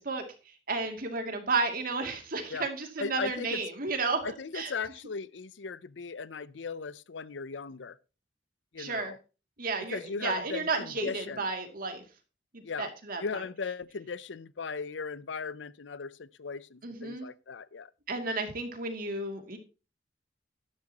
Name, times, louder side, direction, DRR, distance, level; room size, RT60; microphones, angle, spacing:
voice 1, 0.0-4.2 4.5-4.7 8.8-9.1 9.6-12.0 12.5-13.4 16.8-17.3 18.1-19.6, right 3 dB, 50° right, 2.6 m, -32 dB
voice 2, 3.0-3.6 4.2-8.0 8.7-9.2 9.9-11.4 12.6-12.9 13.2-17.9, left 5 dB, 75° left, 0.6 m, -37 dB
12.5 x 11.0 x 2.9 m
head